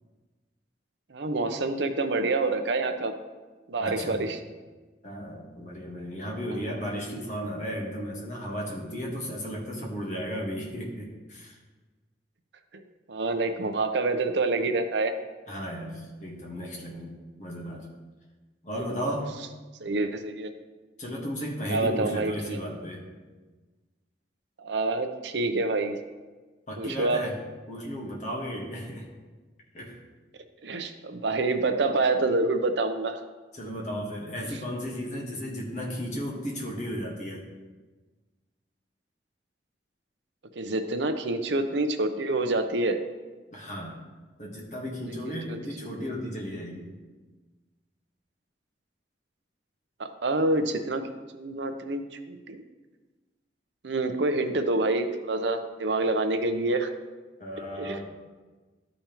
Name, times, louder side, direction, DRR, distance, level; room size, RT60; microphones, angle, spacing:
voice 1, 1.1-3.1 3.7-4.4 12.7-12.8 13.1-15.1 19.8-20.5 21.7-22.6 24.6-26.0 26.8-27.3 30.6-33.2 40.6-43.0 45.5-45.6 46.0-46.1 50.0-51.1 51.3-52.0 52.3-52.6 53.8-56.9 57.7-58.0, right 2 dB, 75° right, 7 dB, 0.6 m, -27 dB
voice 2, 3.8-4.3 5.0-11.6 15.5-17.9 18.6-19.3 21.0-23.0 26.7-29.1 29.7-30.0 33.5-37.4 43.5-44.0 44.4-46.9 57.4-58.2, equal, 40° left, -2 dB, 1.3 m, -34 dB
12.5 x 5.2 x 3.0 m, 1.3 s
head